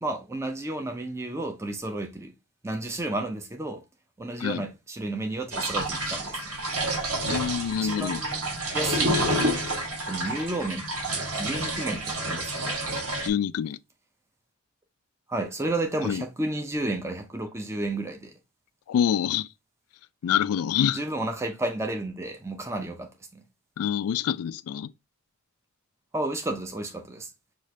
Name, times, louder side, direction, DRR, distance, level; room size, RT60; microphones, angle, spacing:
voice 1, 0.0-2.3 2.6-3.8 4.2-6.6 7.8-9.5 10.1-10.8 11.1-12.8 15.3-18.3 20.9-23.4 26.1-27.3, right 2 dB, 10° right, 0.4 m, -32 dB
sound 1, 5.5-13.3, right 1 dB, 70° right, 1.3 m, -29 dB
voice 2, 7.2-8.2 13.2-13.8 16.0-16.2 18.9-19.5 20.2-21.0 23.8-24.9, left 9 dB, 80° left, 0.3 m, -26 dB
6.3 x 2.4 x 3.2 m
head